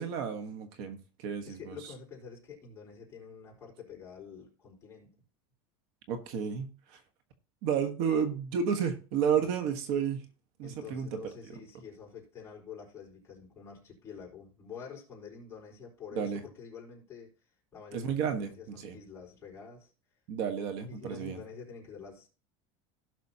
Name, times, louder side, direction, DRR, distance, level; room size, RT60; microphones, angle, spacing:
voice 1, 0.0-1.8 6.1-7.0 7.6-10.2 10.6-11.2 16.1-16.4 17.9-18.9 20.3-21.4, right 7 dB, 60° right, 7 dB, 1.4 m, -32 dB
voice 2, 1.5-5.1 9.3-9.5 10.6-17.3 17.7-19.9 20.9-22.3, left 6 dB, 20° left, -3 dB, 4.3 m, -47 dB
16.5 x 6.2 x 2.9 m, 0.36 s
supercardioid pair, 150°, 13 cm